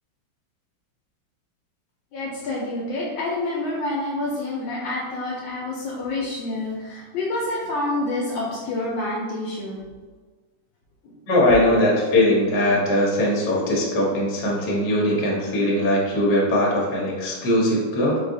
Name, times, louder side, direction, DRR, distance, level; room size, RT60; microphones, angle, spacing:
voice 1, 2.1-9.8 11.7-11.8, left 2 dB, 75° left, -4 dB, 1.3 m, -28 dB
voice 2, 11.3-18.2, left 1 dB, 60° left, -4 dB, 1.3 m, -20 dB
4.3 x 2.3 x 2.5 m, 1.4 s
omnidirectional pair, 2.1 m